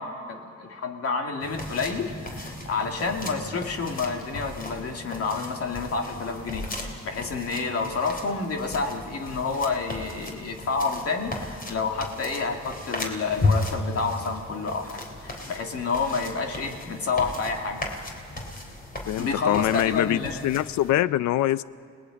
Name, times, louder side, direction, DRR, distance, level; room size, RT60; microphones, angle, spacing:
voice 1, 0.0-17.8 19.2-20.4, left 4 dB, 50° left, 2 dB, 2.5 m, -29 dB
sound 1, 1.4-20.9, left 2 dB, 30° left, 3.6 m, -35 dB
voice 2, 19.1-21.6, left 13 dB, 70° left, 18 dB, 0.6 m, -24 dB
29.0 x 19.0 x 5.3 m, 2.2 s
cardioid pair, 90°, 30 cm